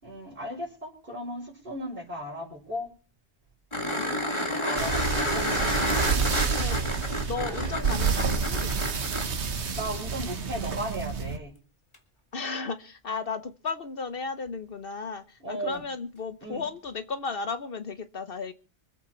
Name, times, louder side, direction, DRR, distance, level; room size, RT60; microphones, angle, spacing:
voice 1, 0.0-2.9 3.9-5.5 9.7-11.5 15.4-15.8 16.4-16.6, equal, 50° right, 0 dB, 5.1 m, -36 dB
sound 1, 3.7-9.3 11.9-12.0, left 1 dB, 25° left, 2.0 m, -30 dB
sound 2, 4.8-11.4, right 5 dB, 75° right, 1.4 m, -29 dB
voice 2, 6.5-8.8 12.3-18.5, left 4 dB, 55° left, 10 dB, 1.0 m, -35 dB
24.5 x 8.5 x 4.3 m, 0.37 s
omnidirectional pair, 1.2 m